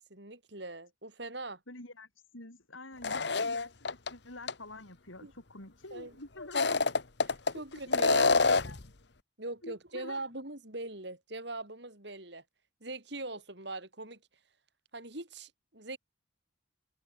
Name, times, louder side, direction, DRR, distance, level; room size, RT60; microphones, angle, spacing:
voice 1, 0.0-1.6 5.2-5.3 5.9-6.2 7.3-8.4 9.4-12.4 12.8-14.2 14.9-16.0, right 2 dB, 60° right, 4.6 m, -41 dB
voice 2, 1.7-2.1 2.3-6.8 7.5-8.8 9.6-10.2, left 2 dB, 85° left, 6.9 m, -48 dB
sound 1, 3.0-4.1 4.5-4.6 6.4-7.5 7.9-8.8, left 4 dB, 60° left, 1.2 m, -26 dB
head